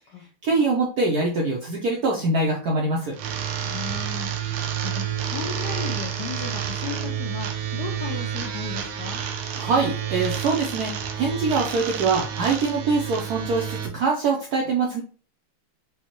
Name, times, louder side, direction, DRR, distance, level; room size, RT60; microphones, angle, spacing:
voice 1, 0.4-3.1 9.6-15.0, right 3 dB, 75° right, -2 dB, 0.8 m, -23 dB
sound 1, 3.1-13.9, right 9 dB, 90° right, 1.5 m, -29 dB
voice 2, 3.6-9.2, left 6 dB, 75° left, 1 dB, 0.9 m, -36 dB
5.4 x 2.1 x 2.9 m, 0.39 s
omnidirectional pair, 2.3 m